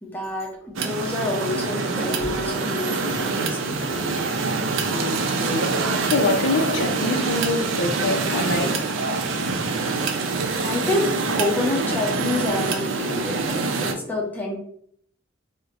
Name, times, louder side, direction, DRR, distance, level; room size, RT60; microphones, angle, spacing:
voice 1, 0.0-4.3 10.3-14.6, left 2 dB, 10° left, 0.6 m, -28 dB
sound 1, 0.8-13.9, right 3 dB, 85° right, 0.5 m, -25 dB
voice 2, 4.8-8.9, left 2 dB, 70° left, 0.4 m, -26 dB
2.7 x 2.1 x 3.8 m
head